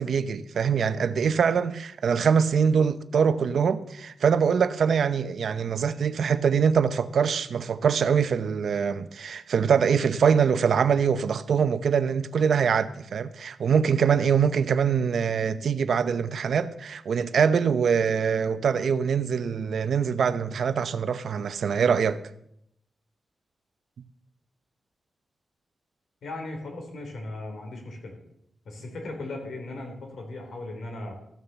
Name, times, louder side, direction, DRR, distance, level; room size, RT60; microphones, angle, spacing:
voice 1, 0.0-22.2, right 6 dB, 75° right, 0.7 m, -23 dB
voice 2, 26.2-28.2 28.6-31.1, left 2 dB, 80° left, 3.9 m, -37 dB
14.5 x 7.2 x 6.9 m
wide cardioid pair, 135°, 0 cm